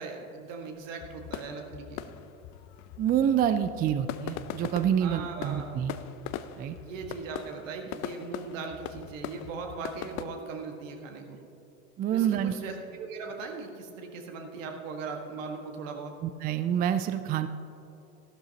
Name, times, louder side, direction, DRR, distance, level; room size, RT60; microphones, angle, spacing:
voice 1, 0.0-2.2 5.0-5.8 6.8-11.4 12.1-16.1, right 4 dB, 65° right, 3 dB, 1.8 m, -39 dB
sound 1, 1.0-10.3, left 10 dB, 40° left, 0.6 m, -41 dB
voice 2, 3.0-6.0 6.6-6.8 12.0-12.5 16.2-17.5, right 9 dB, 25° right, 10 dB, 0.4 m, -27 dB
14.5 x 12.5 x 2.9 m, 2.8 s
hypercardioid pair, 80°, 41 cm